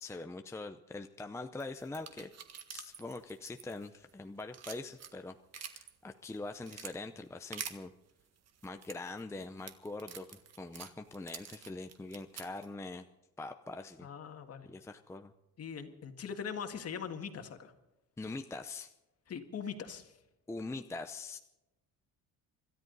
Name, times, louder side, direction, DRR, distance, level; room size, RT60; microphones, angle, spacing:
voice 1, 0.0-2.3 2.7-7.9 8.6-13.0 13.4-14.1 14.6-15.3 18.2-18.9 20.5-21.4, left 3 dB, 10° left, 6 dB, 0.6 m, -43 dB
sound 1, 1.6-4.1 4.4-5.9 6.3-6.9 7.5-7.8 8.5-12.7, right 8 dB, 45° right, 1.7 m, -46 dB
voice 2, 14.0-14.7 15.6-17.7 19.3-20.1, left 7 dB, 45° left, 6 dB, 1.9 m, -41 dB
26.5 x 13.5 x 4.0 m, 0.94 s
cardioid pair, 140°, 35 cm